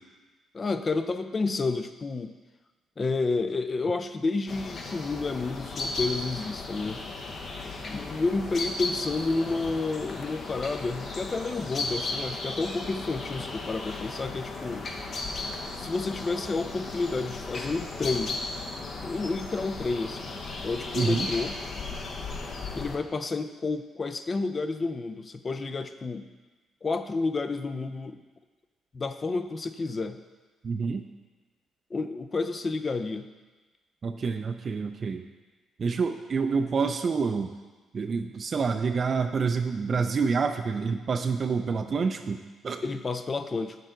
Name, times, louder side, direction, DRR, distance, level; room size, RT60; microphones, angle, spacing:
voice 1, 0.5-2.3 3.0-7.0 7.9-14.9 15.7-18.4 19.0-20.3 20.6-21.6 22.7-26.3 26.8-28.2 28.9-30.2 31.9-33.3 42.8-43.8, left 3 dB, 35° left, 10 dB, 0.5 m, -30 dB
sound 1, 4.5-23.0, left 3 dB, 55° left, 0.9 m, -36 dB
voice 2, 21.0-21.3 30.6-31.1 34.0-35.3 35.8-37.5 37.9-42.8, right 5 dB, 45° right, 6 dB, 0.4 m, -28 dB
7.8 x 6.6 x 3.8 m, 1.3 s
cardioid pair, 90°, 0 cm